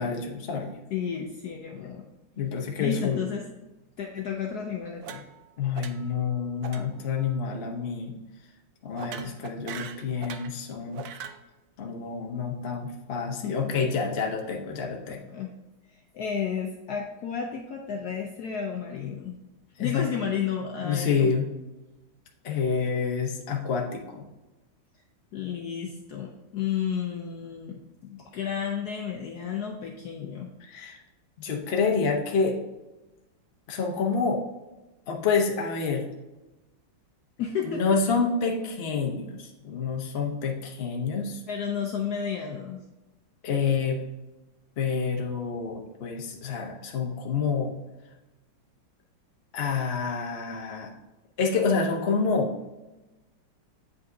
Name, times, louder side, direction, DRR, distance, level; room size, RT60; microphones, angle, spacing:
voice 1, 0.0-0.7 2.4-3.2 5.6-8.2 8.8-11.1 11.8-15.3 19.8-20.1 20.8-21.5 22.4-24.2 30.6-31.0 31.4-32.6 33.7-34.4 35.1-36.1 37.6-41.4 43.4-44.0 44.8-47.8 49.5-50.9 51.4-52.5, left 5 dB, 45° left, 1 dB, 0.9 m, -28 dB
voice 2, 0.9-2.1 2.8-3.5 4.0-5.2 13.4-13.7 15.0-15.5 15.9-19.4 19.8-21.3 25.3-30.5 37.4-37.8 41.5-42.8, left 7 dB, 65° left, 1 dB, 1.0 m, -32 dB
sound 1, 5.0-5.5 5.7-6.2 6.6-6.9 7.1-7.4 9.0-10.5 10.9-11.4, right 7 dB, 75° right, 0.9 m, -40 dB
8.3 x 5.2 x 2.7 m, 1.0 s
omnidirectional pair, 2.1 m